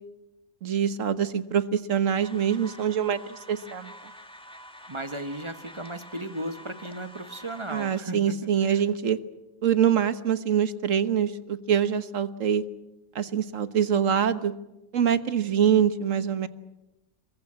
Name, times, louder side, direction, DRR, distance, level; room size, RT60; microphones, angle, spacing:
voice 1, 0.6-3.9 7.7-9.2 9.6-12.6 13.1-14.5 14.9-16.5, right 8 dB, 60° right, 12 dB, 1.5 m, -24 dB
sound 1, 2.2-8.0, equal, 5° left, 1.8 m, -47 dB
voice 2, 4.9-8.8, right 1 dB, 20° right, 10 dB, 1.1 m, -36 dB
24.5 x 21.5 x 8.6 m, 0.97 s
omnidirectional pair, 1.5 m